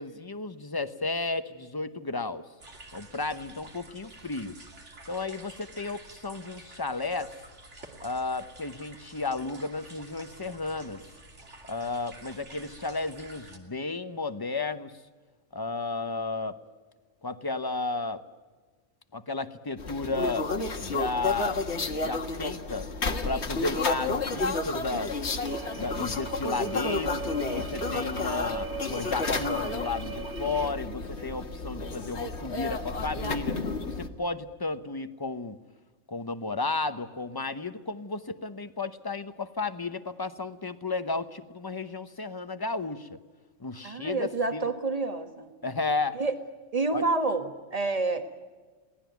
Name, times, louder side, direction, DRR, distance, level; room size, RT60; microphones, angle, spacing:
voice 1, 0.0-2.5 2.9-4.6 5.1-7.3 8.0-11.0 11.7-14.9 15.5-16.6 17.2-18.2 19.1-20.5 20.8-21.6 22.0-22.9 23.2-25.2 25.8-33.6 33.8-35.6 36.1-43.2 43.6-44.7 45.6-46.2 46.9-47.1, left 3 dB, 20° left, 12 dB, 0.9 m, -33 dB
sound 1, 2.6-13.6, right 2 dB, 65° right, 3.0 m, -49 dB
sound 2, 19.8-34.1, left 3 dB, 60° left, 1.8 m, -31 dB
sound 3, 25.5-30.7, right 5 dB, 50° right, 1.5 m, -39 dB
voice 2, 43.8-45.5 46.2-46.3 46.7-48.2, right 3 dB, 30° right, 7 dB, 1.9 m, -28 dB
23.0 x 18.0 x 9.4 m, 1.4 s
omnidirectional pair, 1.3 m